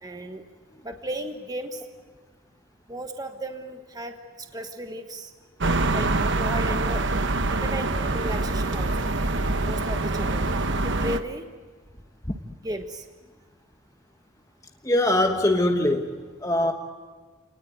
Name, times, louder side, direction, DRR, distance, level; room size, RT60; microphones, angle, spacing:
voice 1, 0.0-0.4 0.8-1.8 2.9-5.3 5.9-6.1 6.4-7.1 7.5-8.9 9.6-10.5 10.8-11.5 12.6-13.0, right 1 dB, 15° right, 5 dB, 1.4 m, -35 dB
sound 1, 5.6-11.2, right 2 dB, 55° right, 1.1 m, -25 dB
voice 2, 14.8-16.1 16.4-16.7, left 1 dB, 15° left, 2 dB, 1.4 m, -21 dB
29.5 x 19.0 x 9.5 m, 1.4 s
head